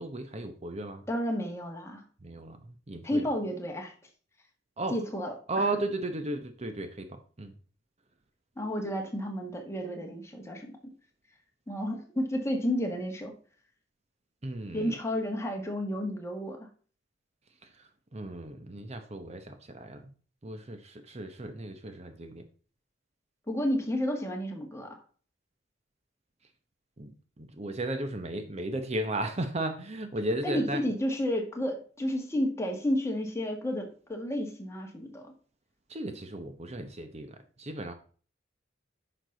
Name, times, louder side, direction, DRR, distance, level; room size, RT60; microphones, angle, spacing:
voice 1, 0.0-1.0 2.2-3.3 4.8-5.0 5.5-7.5 14.4-14.9 17.8-20.1 20.4-22.4 27.0-30.8 35.9-37.9, right 1 dB, 35° right, 8 dB, 0.8 m, -35 dB
voice 2, 1.1-2.0 3.0-3.9 4.9-5.6 8.6-10.8 11.7-13.3 14.7-16.7 23.5-25.0 30.4-35.3, equal, 15° left, 2 dB, 1.8 m, -31 dB
9.6 x 6.0 x 3.9 m, 0.41 s
head